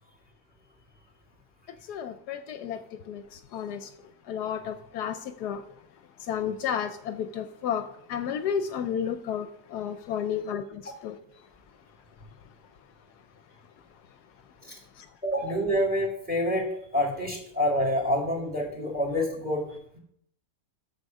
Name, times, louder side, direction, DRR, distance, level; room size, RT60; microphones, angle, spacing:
voice 1, 1.9-2.8 3.1-3.9 4.3-5.6 6.3-11.2 15.0-15.1, left 8 dB, 75° left, 1.1 m, -32 dB
voice 2, 15.2-19.6, equal, 5° right, 2.4 m, -27 dB
8.1 x 6.9 x 5.3 m
omnidirectional pair, 1.8 m